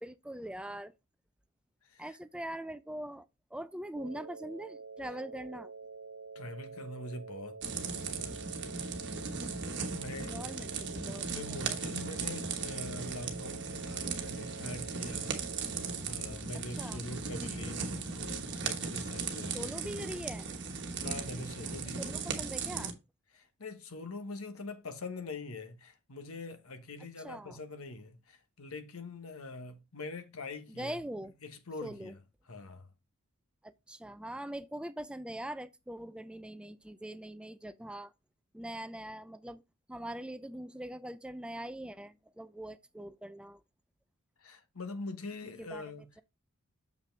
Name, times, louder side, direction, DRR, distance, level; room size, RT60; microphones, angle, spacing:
voice 1, 0.0-0.9 2.0-3.3 3.5-5.7 10.2-11.8 16.8-17.1 19.5-20.5 22.0-22.9 27.2-27.6 30.8-31.3 31.8-32.1 33.6-38.1 38.5-39.6 39.9-43.6 45.7-45.8, right 1 dB, 5° right, 0.3 m, -42 dB
voice 2, 1.8-2.2 6.3-8.4 9.6-10.4 11.2-15.4 16.0-20.0 21.0-22.3 23.3-31.0 31.4-32.2 32.5-32.9 44.4-46.1, left 2 dB, 80° left, 1.2 m, -44 dB
sound 1, 4.0-16.0, right 4 dB, 85° right, 0.8 m, -47 dB
sound 2, 7.6-22.9, right 5 dB, 55° right, 1.2 m, -37 dB
6.7 x 5.7 x 3.3 m
head